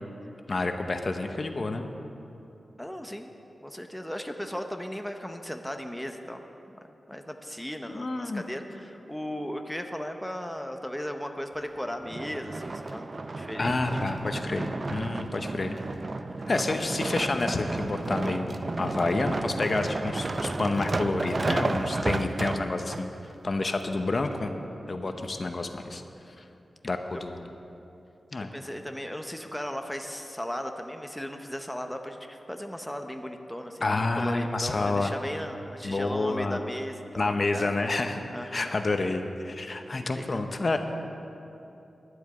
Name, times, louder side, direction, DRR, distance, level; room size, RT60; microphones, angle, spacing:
voice 1, 0.5-1.9 7.9-8.4 13.6-15.8 16.5-23.1 23.4-24.5 24.9-26.0 26.8-27.4 28.3-28.5 33.8-35.1 35.8-36.6 37.2-38.2 38.5-40.8, left 2 dB, 45° left, 6 dB, 0.8 m, -29 dB
voice 2, 2.8-3.3 3.6-6.8 7.1-13.1 13.4-13.8 20.7-21.1 25.1-25.5 28.4-37.8 38.3-38.7 40.0-40.4, equal, 5° left, 5 dB, 0.7 m, -37 dB
sound 1, 12.0-23.0 23.7-23.8, right 3 dB, 40° right, 0.5 m, -32 dB
11.5 x 7.8 x 8.3 m, 2.9 s
wide cardioid pair, 90°, 0 cm